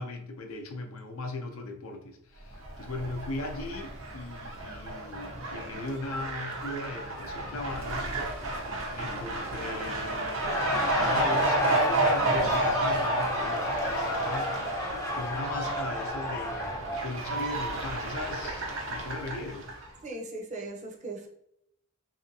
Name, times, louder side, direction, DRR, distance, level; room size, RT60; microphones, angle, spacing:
voice 1, 0.0-8.1 8.9-10.6 11.0-14.5 15.1-19.7, left 2 dB, 85° left, 0.6 m, -38 dB
Fowl, 2.5-19.9, right 2 dB, 85° right, 0.8 m, -31 dB
Laughter, 10.3-17.1, left 1 dB, 15° left, 0.4 m, -33 dB
voice 2, 20.0-21.3, right 2 dB, 35° right, 0.5 m, -38 dB
3.3 x 2.7 x 2.7 m
head